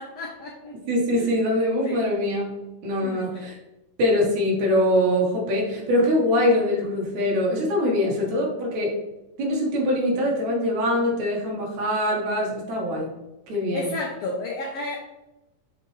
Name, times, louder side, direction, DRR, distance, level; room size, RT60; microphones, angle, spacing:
voice 1, 0.0-0.7 1.1-1.4 1.8-2.1 3.0-3.4 13.7-15.0, left 2 dB, 80° left, -1 dB, 1.4 m, -32 dB
voice 2, 0.9-2.6 2.8-3.6 4.0-9.0 9.4-13.1 13.5-13.9, left 1 dB, 65° right, -1 dB, 2.4 m, -23 dB
7.1 x 4.5 x 3.2 m, 0.98 s
omnidirectional pair, 3.8 m